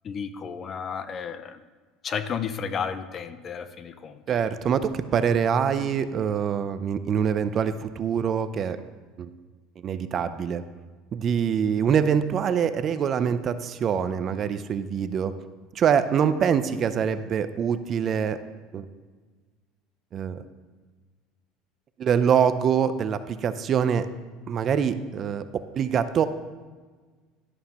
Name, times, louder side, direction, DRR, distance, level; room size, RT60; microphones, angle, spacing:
voice 1, 0.0-1.6 2.0-4.4, left 6 dB, 30° left, 12 dB, 0.5 m, -33 dB
voice 2, 4.3-8.8 9.2-9.3 9.8-10.6 11.1-15.3 15.7-18.4 18.7-18.9 20.1-20.4 22.0-24.1 24.5-25.4 25.8-26.3, right 7 dB, 35° right, 12 dB, 0.5 m, -24 dB
11.5 x 11.0 x 3.0 m, 1.4 s
cardioid pair, 150°, 0 cm